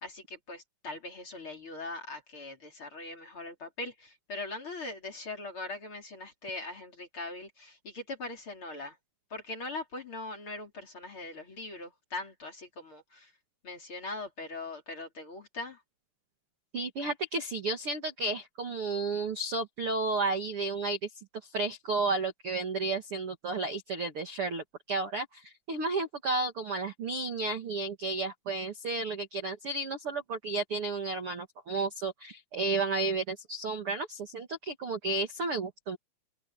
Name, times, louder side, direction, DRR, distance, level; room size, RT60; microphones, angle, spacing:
voice 1, 0.0-9.0 9.3-13.3 13.6-15.8, left 2 dB, 30° left, 3.6 m, -41 dB
voice 2, 16.7-21.1 21.4-36.0, right 3 dB, 55° right, 1.6 m, -32 dB
omnidirectional pair, 5.5 m